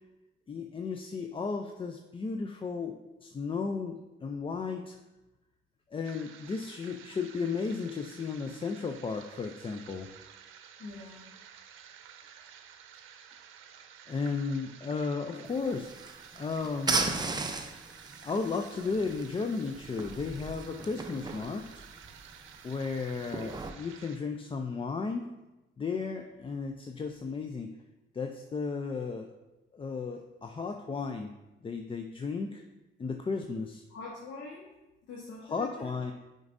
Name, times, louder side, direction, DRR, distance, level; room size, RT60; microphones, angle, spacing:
voice 1, 0.5-5.0 5.9-10.1 14.1-15.9 16.3-17.1 18.2-21.8 22.6-25.3 25.8-27.7 28.1-29.3 29.7-31.3 31.6-32.6 33.0-33.8 35.5-36.1, left 4 dB, 25° left, 4 dB, 0.4 m, -34 dB
sound 1, 6.0-24.2, right 8 dB, 90° right, 0.6 m, -52 dB
voice 2, 10.8-11.3 33.9-34.7 35.1-35.9, left 3 dB, 75° left, -3 dB, 1.2 m, -44 dB
sound 2, 15.5-23.7, right 3 dB, 20° right, 0.6 m, -37 dB
9.5 x 5.2 x 2.6 m, 1.0 s
cardioid pair, 90°, 20 cm